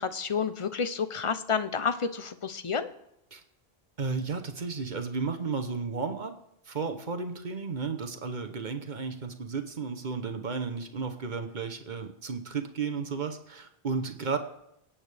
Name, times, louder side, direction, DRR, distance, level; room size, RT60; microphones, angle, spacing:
voice 1, 0.0-2.9, left 6 dB, 35° left, 11 dB, 0.6 m, -30 dB
voice 2, 4.0-6.3 6.7-14.4, right 5 dB, 50° right, 7 dB, 1.0 m, -33 dB
25.0 x 8.9 x 3.4 m, 0.81 s
omnidirectional pair, 1.0 m